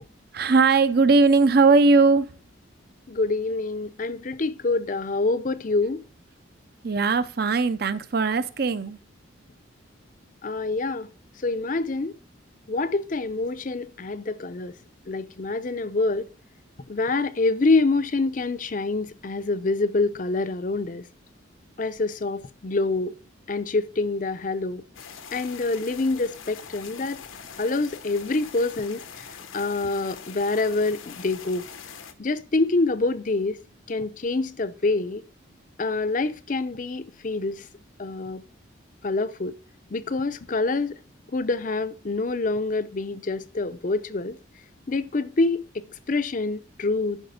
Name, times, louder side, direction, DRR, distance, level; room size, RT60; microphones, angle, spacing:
voice 1, 0.3-2.3 6.8-9.0, right 4 dB, 50° right, 0.6 m, -19 dB
voice 2, 3.1-6.0 10.4-11.1 11.4-12.1 12.7-14.8 15.1-16.3 16.9-21.0 21.8-23.2 23.5-24.8 25.3-27.2 27.6-29.3 29.5-31.7 32.2-33.6 33.9-35.2 35.8-37.6 38.0-38.4 39.0-39.6 39.9-41.0 41.3-44.4 44.9-47.2, left 3 dB, 40° left, 0.5 m, -26 dB
sound 1, 24.9-32.1, left 7 dB, 90° left, 1.1 m, -43 dB
11.0 x 5.1 x 5.1 m
head